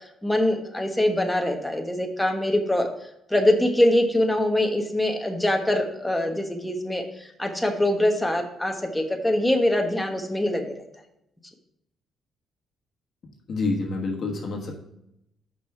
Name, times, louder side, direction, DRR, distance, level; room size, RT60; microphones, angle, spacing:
voice 1, 0.2-2.9 3.3-10.7, left 1 dB, 5° left, 3 dB, 1.2 m, -23 dB
voice 2, 13.2-14.7, left 3 dB, 55° left, 0 dB, 1.4 m, -28 dB
5.9 x 5.6 x 4.5 m, 0.81 s
cardioid pair, 90°, 0 cm